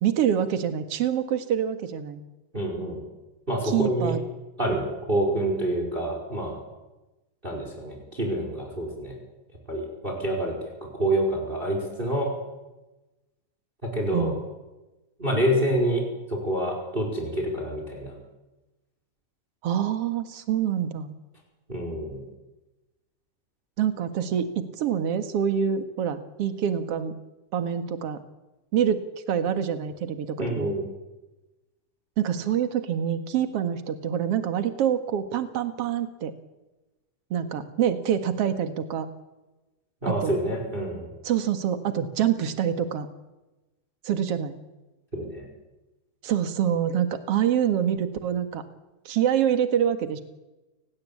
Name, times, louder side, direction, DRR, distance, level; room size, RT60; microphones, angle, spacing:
voice 1, 0.0-2.2 3.6-4.2 14.1-14.4 19.6-21.1 23.8-27.2 27.5-28.2 28.7-30.7 32.2-36.3 37.3-39.1 40.1-40.4 41.2-43.1 44.0-44.6 46.2-48.6 49.1-50.2, right 9 dB, 50° right, 8 dB, 2.4 m, -26 dB
voice 2, 2.5-3.0 3.5-4.1 4.6-6.6 7.4-9.2 9.7-10.5 10.9-12.3 13.9-14.3 15.2-16.0 16.3-18.2 21.7-22.2 30.4-30.9 40.0-41.1 45.1-45.4, right 1 dB, 15° right, 1 dB, 5.1 m, -27 dB
29.5 x 18.5 x 8.6 m, 1.1 s
omnidirectional pair, 3.8 m